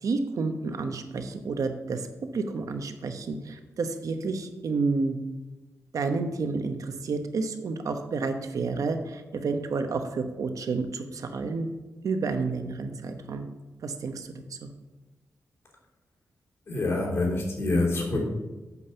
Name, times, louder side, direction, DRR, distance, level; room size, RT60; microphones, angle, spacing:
voice 1, 0.0-2.0 2.3-5.2 5.9-11.7 12.0-13.5 13.8-14.3 14.6-14.7, right 4 dB, 70° right, 7 dB, 0.9 m, -30 dB
voice 2, 16.7-18.2, left 2 dB, 50° left, -3 dB, 3.1 m, -26 dB
8.4 x 5.4 x 6.9 m, 1.1 s
wide cardioid pair, 140°, 6 cm